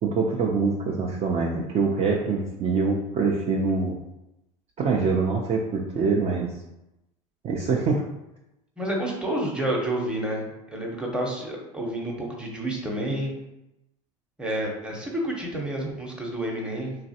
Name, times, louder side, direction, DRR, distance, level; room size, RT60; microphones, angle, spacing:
voice 1, 0.0-4.0 4.8-6.5 7.4-8.0, right 4 dB, 35° right, -1 dB, 0.4 m, -24 dB
voice 2, 8.8-13.3 14.4-17.0, right 1 dB, 5° right, -2 dB, 0.8 m, -29 dB
3.1 x 2.3 x 2.7 m, 0.91 s
hypercardioid pair, 85°, 17 cm